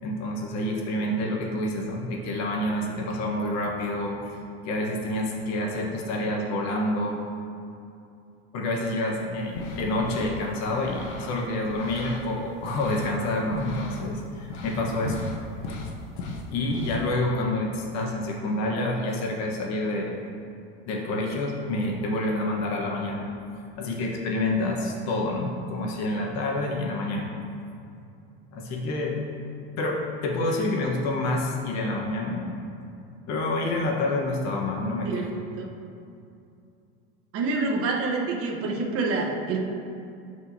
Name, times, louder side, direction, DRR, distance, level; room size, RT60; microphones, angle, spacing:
voice 1, 0.0-4.2 4.6-7.2 8.5-15.2 16.5-20.2 20.9-23.3 23.8-27.3 28.5-29.2 29.8-32.5 33.3-35.3, left 1 dB, 55° left, -1 dB, 1.3 m, -28 dB
sound 1, 9.4-10.3 10.7-12.3 12.6-14.0 14.5-14.8 15.1-17.0, left 3 dB, 85° left, 1.0 m, -37 dB
voice 2, 37.3-39.6, right 3 dB, 45° right, -1 dB, 1.1 m, -27 dB
13.0 x 4.8 x 2.8 m, 2.6 s
supercardioid pair, 105°, 32 cm